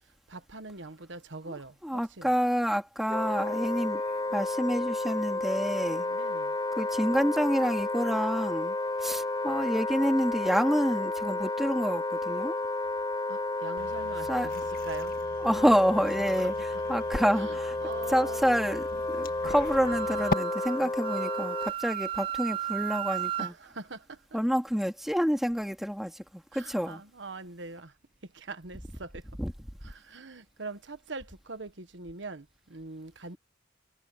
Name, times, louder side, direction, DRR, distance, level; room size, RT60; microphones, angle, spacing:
voice 1, 0.3-2.3 5.9-6.6 13.3-15.1 16.4-16.8 17.3-18.4 20.7-20.9 23.4-24.4 26.5-27.9 28.2-29.3 29.8-33.4, right 3 dB, 80° right, 1.3 m, -43 dB
voice 2, 1.8-4.0 4.3-6.0 6.8-12.6 14.3-14.5 15.4-17.8 18.1-23.5 24.3-27.0 29.4-29.5, equal, ahead, 2.2 m, -28 dB
Wind instrument woodwind instrument, 3.1-21.7, left 2 dB, 20° left, 0.4 m, -32 dB
sound 1, 13.8-20.4, left 2 dB, 50° left, 1.9 m, -40 dB
Wind instrument woodwind instrument 2, 19.8-23.5, right 12 dB, 30° right, 0.9 m, -34 dB
head